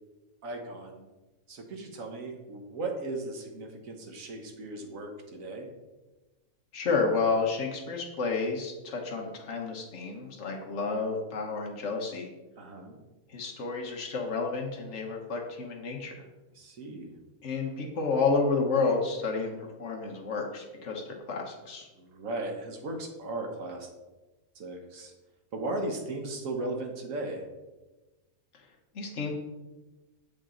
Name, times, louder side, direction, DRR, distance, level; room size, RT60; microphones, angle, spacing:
voice 1, 0.4-1.1 1.5-5.7 12.6-13.0 16.5-17.2 22.0-23.9 24.5-25.1 25.5-27.4, right 2 dB, 65° right, 3 dB, 1.4 m, -37 dB
voice 2, 6.7-12.3 13.3-16.1 17.4-21.9 28.9-29.3, left 4 dB, 55° left, 0 dB, 1.4 m, -30 dB
7.0 x 5.4 x 3.8 m, 1.1 s
omnidirectional pair, 1.6 m